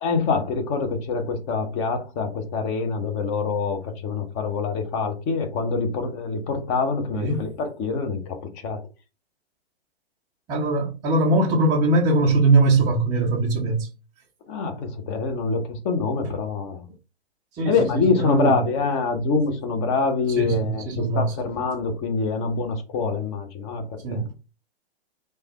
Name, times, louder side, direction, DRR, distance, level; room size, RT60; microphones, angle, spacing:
voice 1, 0.0-8.8 14.5-16.9 17.6-24.3, left 4 dB, 25° left, 0.6 m, -25 dB
voice 2, 7.1-7.4 10.5-13.9 17.6-18.6 20.4-21.3 24.0-24.3, right 2 dB, 10° right, 0.4 m, -21 dB
3.2 x 2.2 x 2.9 m
figure-of-eight pair, 120°, 32 cm